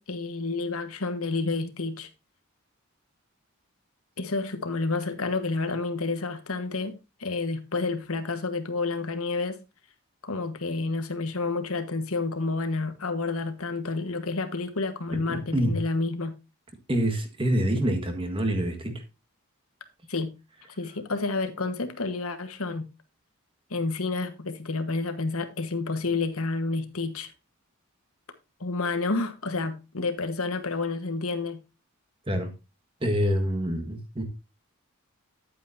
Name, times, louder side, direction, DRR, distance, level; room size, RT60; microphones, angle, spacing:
voice 1, 0.0-2.1 4.2-6.9 7.2-9.6 10.2-16.3 20.1-20.3 20.8-22.8 23.7-27.3 28.6-31.6, left 3 dB, 70° left, 1.3 m, -29 dB
voice 2, 15.1-15.8 16.9-19.0 32.3-32.5 33.0-34.2, equal, 25° right, 1.5 m, -26 dB
10.5 x 8.8 x 2.7 m
head